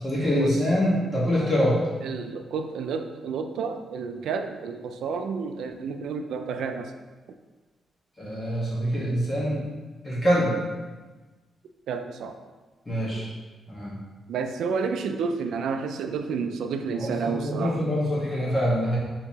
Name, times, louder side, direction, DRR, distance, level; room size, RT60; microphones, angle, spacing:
voice 1, 0.0-1.8 8.2-9.6 10.0-10.5 12.9-13.3 13.7-13.9 16.9-19.0, equal, 20° left, -7 dB, 1.3 m, -24 dB
voice 2, 2.0-6.9 11.9-12.4 13.1-13.2 14.3-17.8, right 5 dB, 90° right, 7 dB, 0.3 m, -30 dB
6.6 x 2.9 x 2.8 m, 1.3 s
wide cardioid pair, 180°, 0 cm